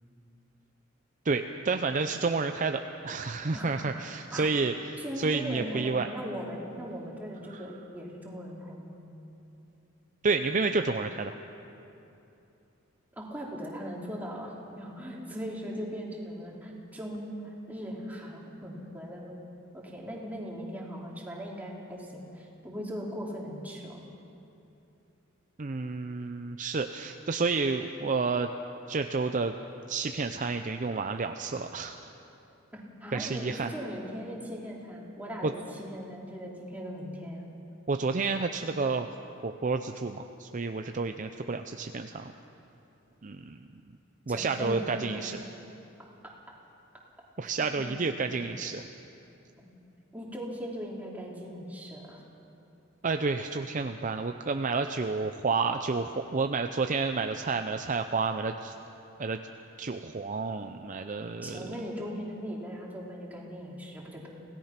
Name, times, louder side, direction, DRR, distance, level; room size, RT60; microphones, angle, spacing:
voice 1, 1.2-4.7 5.2-6.1 7.5-7.6 10.2-11.3 25.6-28.5 28.9-29.5 29.9-32.0 33.1-33.7 35.4-35.5 37.9-39.1 39.4-42.3 43.2-43.6 44.3-45.4 47.4-48.8 53.0-58.7 59.2-59.4 59.8-61.7, right 4 dB, 40° right, 7 dB, 0.6 m, -30 dB
voice 2, 3.5-4.0 4.3-4.5 5.0-9.1 13.2-19.4 19.7-24.0 32.7-37.4 44.3-45.3 46.2-46.3 47.6-47.9 50.1-52.2 61.4-64.3, equal, 10° right, -3 dB, 3.2 m, -39 dB
25.5 x 17.0 x 5.9 m, 2.8 s
head